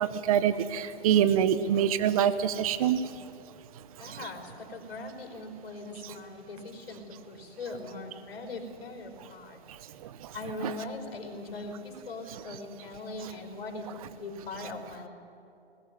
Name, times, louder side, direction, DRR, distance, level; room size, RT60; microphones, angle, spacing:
voice 1, 0.0-3.0 4.0-4.3 9.7-10.3 10.6-10.7, right 9 dB, 35° right, 14 dB, 0.9 m, -26 dB
voice 2, 4.0-9.6 10.3-13.8 14.1-15.1, left 2 dB, 65° left, 3 dB, 5.0 m, -40 dB
20.5 x 17.5 x 9.3 m, 2.7 s
hypercardioid pair, 150°, 33 cm